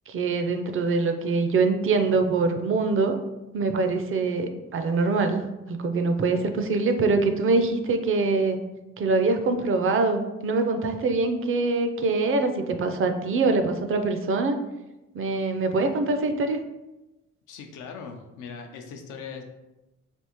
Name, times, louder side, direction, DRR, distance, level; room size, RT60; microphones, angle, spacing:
voice 1, 0.1-3.2 3.5-8.6 9.0-14.6 15.1-16.6, right 3 dB, 45° right, 7 dB, 0.4 m, -24 dB
voice 2, 17.5-19.4, left 5 dB, 90° left, 4 dB, 0.5 m, -40 dB
3.5 x 2.4 x 2.9 m, 0.99 s
cardioid pair, 90°, 30 cm